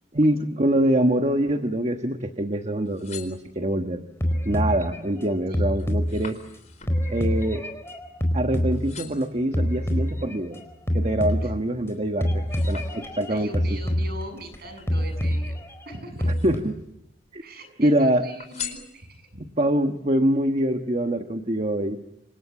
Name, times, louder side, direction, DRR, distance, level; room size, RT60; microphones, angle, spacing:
voice 1, 0.1-4.0 4.4-6.4 7.1-7.6 8.3-10.6 10.9-13.8 16.4-16.7 17.3-17.4 17.8-18.3 19.6-22.0, right 1 dB, 35° right, 6 dB, 1.4 m, -24 dB
sound 1, 2.8-4.0 4.5-5.0 5.3-8.4 8.7-9.4 10.0-11.5 11.9-13.5 14.4-15.5 16.1-16.9 17.2-17.9 18.4-19.5 20.0-20.1, left 8 dB, 40° left, 4.5 m, -43 dB
sound 2, 4.2-6.6 6.9-9.2 9.5-10.6 10.9-11.9 12.2-14.6 14.9-16.6, equal, 15° left, 4.6 m, -26 dB
voice 2, 5.5-5.8 11.4-11.5 13.3-15.6 15.9-16.4 17.4-19.4, right 1 dB, 55° right, 8 dB, 7.7 m, -41 dB
28.5 x 26.5 x 7.3 m, 0.85 s
head